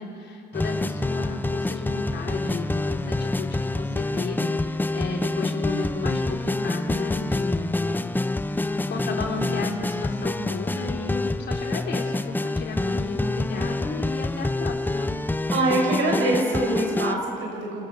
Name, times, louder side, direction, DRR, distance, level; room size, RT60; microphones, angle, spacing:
voice 1, 0.0-7.7 7.9-8.2 8.5-15.1, left 3 dB, 60° left, 0 dB, 3.9 m, -33 dB
sound 1, 0.5-17.2, left 2 dB, 10° left, 0.7 m, -27 dB
voice 2, 15.5-17.9, right 2 dB, 85° right, 0 dB, 5.6 m, -24 dB
28.5 x 14.0 x 7.0 m, 2.7 s
cardioid pair, 90°, 20 cm